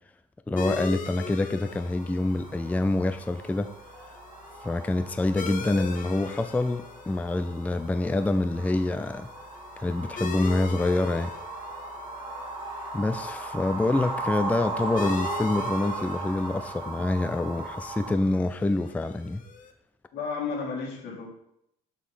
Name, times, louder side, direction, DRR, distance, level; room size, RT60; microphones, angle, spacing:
voice 1, 0.5-3.7 4.6-9.3 9.8-11.3 12.9-19.4, left 2 dB, 10° left, 10 dB, 0.4 m, -26 dB
sound 1, 0.6-19.7, left 6 dB, 50° left, 1.0 m, -42 dB
sound 2, 1.7-18.1, right 2 dB, 30° right, 1.8 m, -37 dB
voice 2, 20.1-21.3, left 5 dB, 85° left, -2 dB, 2.7 m, -32 dB
6.2 x 5.2 x 5.6 m, 0.76 s
cardioid pair, 110°, 17 cm